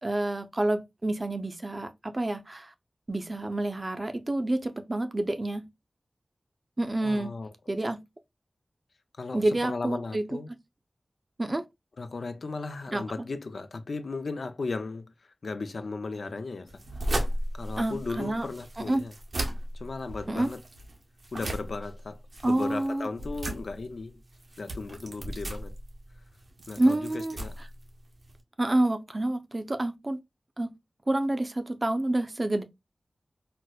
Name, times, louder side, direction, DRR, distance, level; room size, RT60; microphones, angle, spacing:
voice 1, 0.0-2.7 3.1-5.7 6.8-7.3 7.7-8.0 9.3-10.2 11.4-11.6 12.9-13.0 17.8-18.5 18.9-19.0 20.3-20.5 22.4-23.1 26.8-27.4 28.6-30.2 30.6-30.7 31.1-32.6, right 1 dB, 40° right, 0.5 m, -28 dB
voice 2, 7.0-7.5 9.2-10.5 12.0-16.8 17.1-17.2 17.5-19.1 19.7-20.6 21.3-24.2 24.6-25.7 26.7-27.6, left 3 dB, 85° left, 0.4 m, -36 dB
sound 1, 16.7-28.4, right 1 dB, 70° right, 0.8 m, -36 dB
4.1 x 2.0 x 2.2 m
cardioid pair, 45°, 0 cm